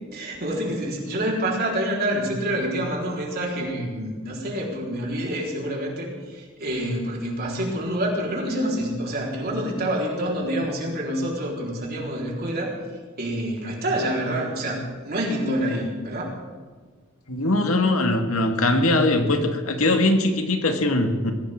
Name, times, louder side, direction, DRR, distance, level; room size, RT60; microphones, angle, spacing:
voice 1, 0.1-12.7 13.2-14.8 15.0-16.4, right 1 dB, 45° right, -2 dB, 4.3 m, -27 dB
voice 2, 17.3-21.3, left 2 dB, 80° left, 5 dB, 1.9 m, -21 dB
22.0 x 17.0 x 3.8 m, 1.5 s
head